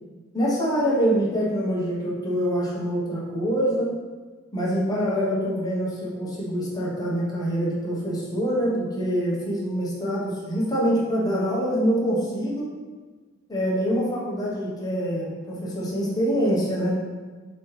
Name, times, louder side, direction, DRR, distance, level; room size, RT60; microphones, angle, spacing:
voice 1, 0.3-3.9 4.5-12.7 13.5-17.0, equal, 20° left, -6 dB, 0.9 m, -25 dB
4.1 x 3.1 x 3.1 m, 1.4 s
head